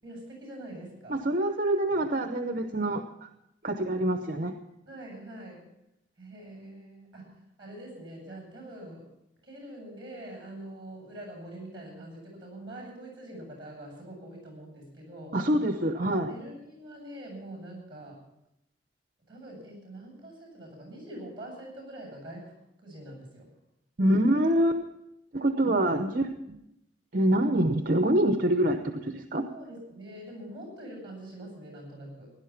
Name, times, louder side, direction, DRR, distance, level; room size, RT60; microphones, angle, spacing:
voice 1, 0.0-1.2 4.9-5.7 6.2-9.1 9.4-15.4 16.3-18.3 19.3-23.5 29.5-32.3, right 1 dB, 25° right, 1 dB, 7.9 m, -44 dB
voice 2, 1.1-3.3 3.6-4.6 15.3-16.3 24.0-24.8 25.3-26.6 27.1-29.5, right 1 dB, 50° right, 6 dB, 0.8 m, -25 dB
17.0 x 11.0 x 5.9 m, 0.85 s
head